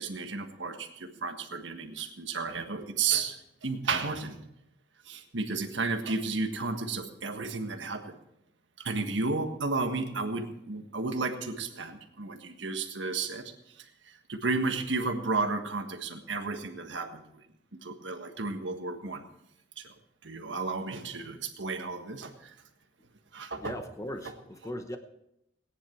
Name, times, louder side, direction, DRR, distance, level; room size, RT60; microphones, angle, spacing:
voice 1, 0.0-4.4 5.0-8.2 8.8-17.4 17.7-19.2 19.8-19.9 20.2-22.6 23.3-23.7, right 4 dB, 80° right, 6 dB, 1.5 m, -33 dB
voice 2, 23.6-25.0, left 1 dB, 20° left, 7 dB, 0.7 m, -38 dB
18.0 x 10.0 x 4.5 m, 0.81 s
head